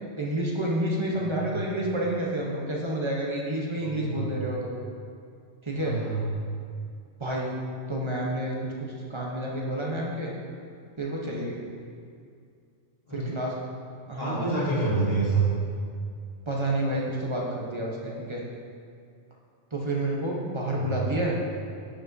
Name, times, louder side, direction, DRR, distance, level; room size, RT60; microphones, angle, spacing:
voice 1, 0.2-4.7 5.6-6.0 7.2-7.6 7.9-10.3 11.0-11.6 13.1-13.6 14.1-14.4 16.5-18.4 19.7-21.4, right 1 dB, 25° right, -3 dB, 0.9 m, -29 dB
voice 2, 1.1-1.6 3.8-4.3 5.8-6.3 13.1-13.3 14.2-15.5 20.7-21.2, right 3 dB, 50° left, -9 dB, 2.2 m, -28 dB
9.8 x 5.8 x 2.7 m, 2.3 s
omnidirectional pair, 1.2 m